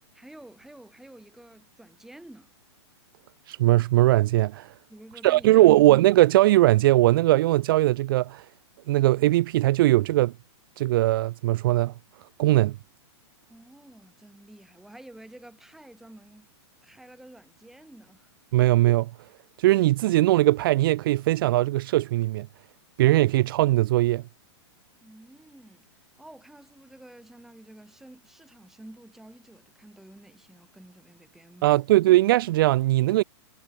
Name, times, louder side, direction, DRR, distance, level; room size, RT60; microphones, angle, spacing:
voice 1, 0.1-2.5 4.9-5.8 13.5-16.5 16.8-18.3 25.0-25.9 26.2-31.8, right 1 dB, ahead, 5.3 m, -49 dB
voice 2, 3.5-4.7 5.2-8.4 8.9-10.3 10.8-11.9 12.4-12.8 18.5-19.1 19.6-22.5 23.0-24.2 31.6-33.2, right 16 dB, 50° right, 0.4 m, -20 dB
hypercardioid pair, 155°, 15 cm